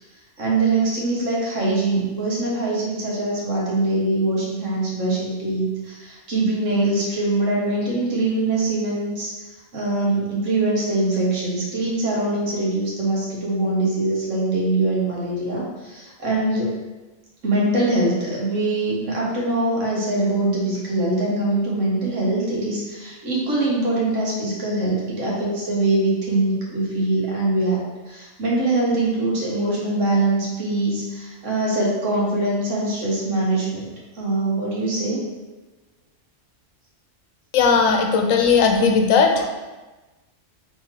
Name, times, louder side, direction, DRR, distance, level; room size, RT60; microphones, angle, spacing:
voice 1, 0.4-16.7 17.4-27.8 28.1-35.2, right 2 dB, 75° right, -5 dB, 1.4 m, -23 dB
voice 2, 37.5-39.5, left 5 dB, 85° left, 3 dB, 1.0 m, -17 dB
3.6 x 3.4 x 3.1 m, 1.2 s
omnidirectional pair, 1.3 m